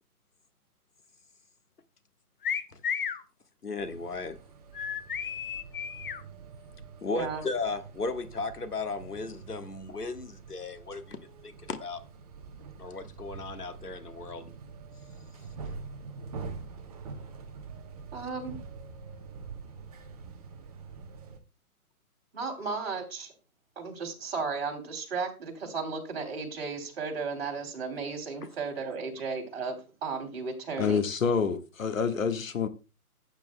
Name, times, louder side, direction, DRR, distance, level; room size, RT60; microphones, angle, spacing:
sound 1, 2.4-3.2 4.7-6.2, left 7 dB, 35° left, 0.7 m, -33 dB
voice 1, 3.6-4.4 7.0-12.0 12.8-14.5, left 3 dB, 90° left, 1.5 m, -35 dB
sound 2, 3.8-21.4, right 4 dB, 25° right, 1.0 m, -45 dB
voice 2, 7.1-7.4 18.1-18.6 22.3-23.3 23.7-31.0, right 4 dB, 45° right, 3.2 m, -34 dB
voice 3, 30.8-32.7, left 6 dB, 60° left, 1.5 m, -27 dB
15.0 x 9.1 x 2.2 m
figure-of-eight pair, 145°, 45 cm